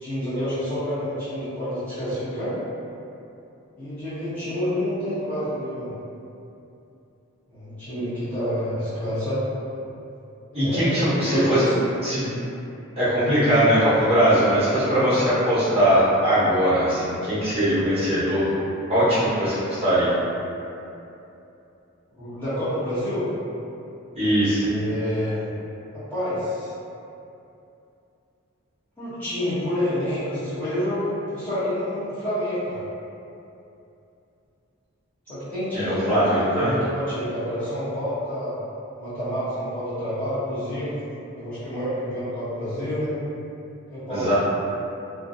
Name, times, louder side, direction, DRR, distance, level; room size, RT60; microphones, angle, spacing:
voice 1, 0.0-2.5 3.8-5.9 7.5-9.4 10.5-11.7 14.9-15.0 22.1-23.3 24.6-25.5 25.9-26.7 29.0-32.8 35.3-38.6 38.9-41.0 41.3-43.2 43.9-44.3, equal, 10° left, -15 dB, 0.9 m, -28 dB
voice 2, 10.5-11.6 12.0-12.3 13.0-18.5 18.9-20.1 24.1-24.7 35.7-36.7 44.1-44.3, equal, 25° right, -12 dB, 1.0 m, -20 dB
2.4 x 2.2 x 2.6 m, 2.8 s
head